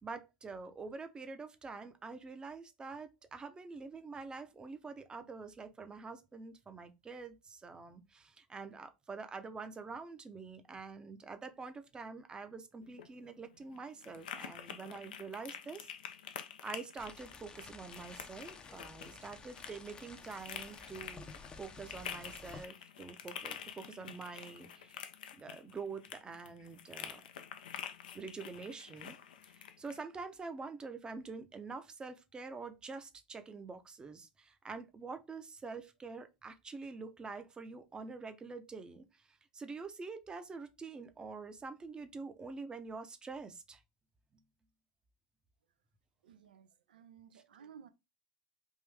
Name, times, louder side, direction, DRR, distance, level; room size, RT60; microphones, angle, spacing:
voice 1, 0.0-15.9 16.6-21.3 21.6-25.0 25.3-27.2 28.1-29.2 29.4-43.8, right 4 dB, 20° right, 0.7 m, -46 dB
sound 1, 12.8-30.0, left 8 dB, 80° left, 0.5 m, -48 dB
sound 2, 17.0-22.7, left 4 dB, 20° left, 0.6 m, -52 dB
voice 2, 46.2-47.9, right 7 dB, 85° right, 0.5 m, -56 dB
3.6 x 2.5 x 3.3 m
hypercardioid pair, 100°, 5 cm